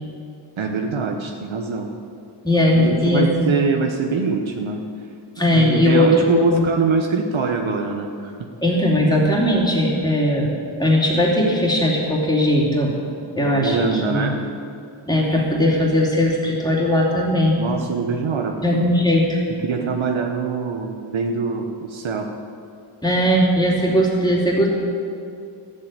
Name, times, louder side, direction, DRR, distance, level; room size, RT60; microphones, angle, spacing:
voice 1, 0.6-1.9 2.7-4.8 5.5-8.5 13.4-14.4 17.6-18.8 19.6-22.3, right 5 dB, 70° right, 2 dB, 1.2 m, -23 dB
voice 2, 2.4-3.5 5.4-6.7 8.6-10.5 10.8-13.0 13.4-13.8 14.1-14.3 15.1-17.6 18.6-19.4 23.0-24.7, left 1 dB, 10° left, -3 dB, 3.0 m, -18 dB
13.5 x 7.9 x 9.1 m, 2.4 s
wide cardioid pair, 125°, 49 cm